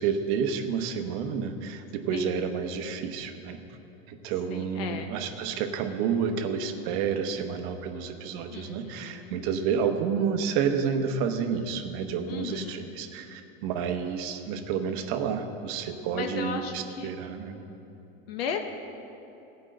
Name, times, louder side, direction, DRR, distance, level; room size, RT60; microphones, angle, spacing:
voice 1, 0.0-3.6 4.1-17.6, right 6 dB, 40° right, 6 dB, 0.8 m, -30 dB
voice 2, 4.5-5.1 8.5-9.4 12.3-12.9 16.1-17.1 18.3-18.6, left 7 dB, 85° left, 5 dB, 0.9 m, -35 dB
15.5 x 5.2 x 7.5 m, 2.9 s
supercardioid pair, 175°, 29 cm